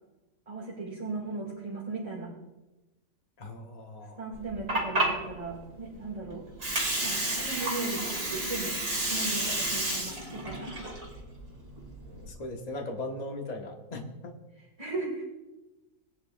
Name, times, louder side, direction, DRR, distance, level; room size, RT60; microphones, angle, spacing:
voice 1, 0.5-2.3 4.2-6.4 7.0-10.9 14.8-15.3, right 3 dB, 20° right, -5 dB, 2.2 m, -37 dB
voice 2, 3.4-4.2 12.3-14.4, left 2 dB, 25° left, 1 dB, 1.3 m, -38 dB
Water, 4.3-12.3, right 1 dB, 45° right, 2.9 m, -31 dB
20.0 x 9.8 x 2.4 m, 1.1 s
omnidirectional pair, 1.7 m